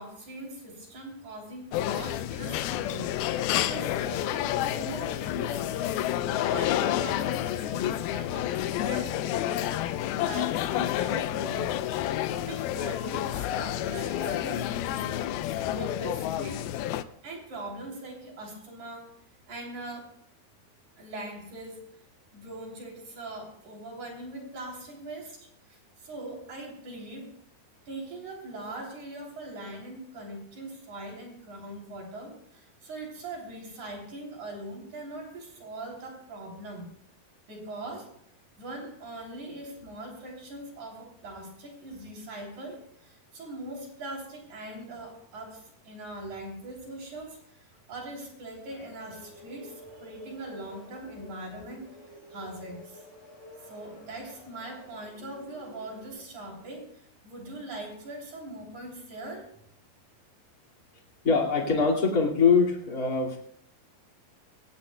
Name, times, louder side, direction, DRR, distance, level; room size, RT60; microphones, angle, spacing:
voice 1, 0.0-11.7 12.3-15.2 15.7-16.7 17.2-19.1 19.5-20.2 21.0-21.8 22.3-27.3 27.9-36.9 37.5-38.1 38.6-49.7 50.0-51.8 52.3-53.0 53.6-59.5, right 2 dB, 50° right, 0 dB, 4.4 m, -41 dB
sound 1, 1.7-17.0, left 12 dB, 80° left, 2.4 m, -29 dB
sound 2, 48.7-56.1, left 1 dB, 45° left, 6.8 m, -51 dB
voice 2, 61.2-63.4, left 5 dB, 30° left, -2 dB, 2.0 m, -23 dB
21.5 x 17.5 x 2.3 m, 0.69 s
omnidirectional pair, 4.6 m